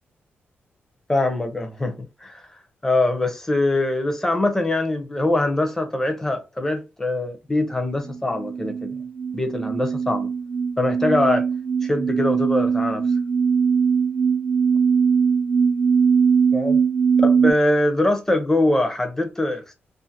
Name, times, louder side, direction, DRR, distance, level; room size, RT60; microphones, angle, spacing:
voice 1, 1.1-2.5 2.8-8.9 9.3-10.3 10.8-11.4 11.8-13.1 16.5-16.8 17.2-19.7, left 2 dB, 10° left, 0.5 m, -23 dB
sound 1, 8.1-17.5, right 6 dB, 70° right, 0.6 m, -21 dB
2.4 x 2.4 x 2.7 m
wide cardioid pair, 150°, 4 cm